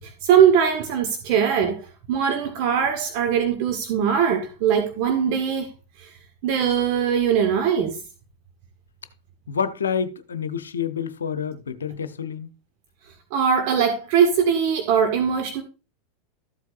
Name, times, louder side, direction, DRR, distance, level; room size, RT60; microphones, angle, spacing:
voice 1, 0.0-1.8 2.1-5.7 6.0-6.1 6.4-8.0 13.3-15.6, right 7 dB, 55° right, 1.6 m, -21 dB
voice 2, 9.5-12.5, left 7 dB, 75° left, 0.8 m, -28 dB
13.5 x 8.1 x 2.6 m
figure-of-eight pair, 85°, 0 cm